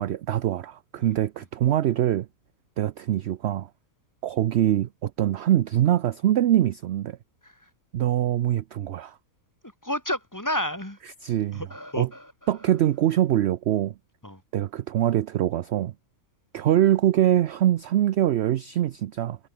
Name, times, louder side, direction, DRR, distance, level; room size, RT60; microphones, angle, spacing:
voice 1, 0.0-2.3 2.8-3.7 4.2-7.2 7.9-9.1 11.2-11.6 12.0-12.1 12.5-13.9 14.5-15.9 16.5-19.4, right 12 dB, 60° right, 0.7 m, -23 dB
voice 2, 9.8-11.0 11.5-12.3 14.2-14.4, left 1 dB, 10° left, 2.8 m, -30 dB
omnidirectional pair, 1.5 m